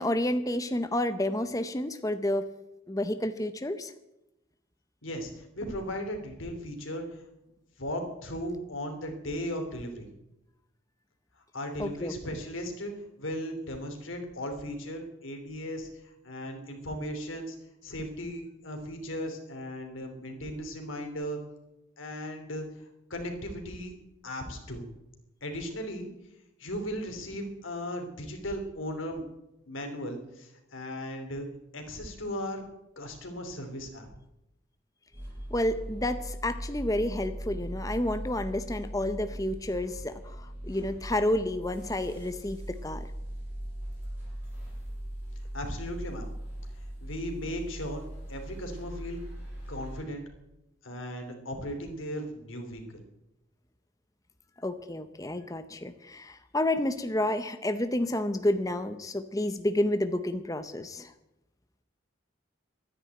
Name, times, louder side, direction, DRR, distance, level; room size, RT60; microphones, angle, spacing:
voice 1, 0.0-2.5 2.9-3.9 11.8-12.1 35.5-40.4 40.6-43.1 54.6-61.1, left 1 dB, 15° left, 9 dB, 0.7 m, -30 dB
voice 2, 5.0-7.3 7.8-10.1 11.5-12.9 13.2-15.9 16.2-17.6 17.8-21.4 22.0-22.6 23.1-23.9 24.2-24.9 25.4-26.1 26.6-29.2 29.7-31.5 31.7-32.6 33.0-34.1 45.5-46.3 46.7-48.0 48.3-49.2 49.7-50.2 50.8-53.0, equal, 80° left, 4 dB, 3.0 m, -37 dB
sound 1, 35.1-50.0, right 1 dB, 10° right, 6.0 m, -40 dB
12.5 x 10.0 x 9.1 m, 0.91 s
head